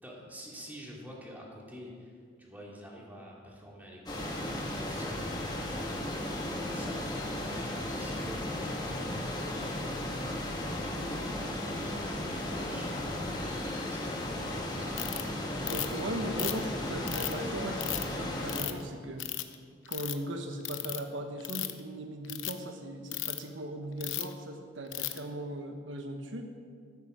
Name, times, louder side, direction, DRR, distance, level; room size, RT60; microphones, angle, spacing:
voice 1, 0.0-2.1 2.4-6.0 6.7-10.6 11.0-14.2 14.7-15.3, equal, 10° right, -3 dB, 2.6 m, -48 dB
sound 1, 4.1-18.6, left 1 dB, 20° left, 1.7 m, -35 dB
Ratchet pawl, 15.0-15.2 15.7-16.0 16.4-17.3 17.8-18.0 18.5-18.8 19.2-19.5 19.9-20.1 20.6-21.0 21.4-21.8 22.2-22.5 23.1-23.4 24.0-24.3 24.9-25.2, left 14 dB, 80° left, 0.8 m, -35 dB
voice 2, 15.7-19.3 19.9-26.5, right 1 dB, 80° right, 5 dB, 1.2 m, -38 dB
14.0 x 12.0 x 5.0 m, 2.1 s
head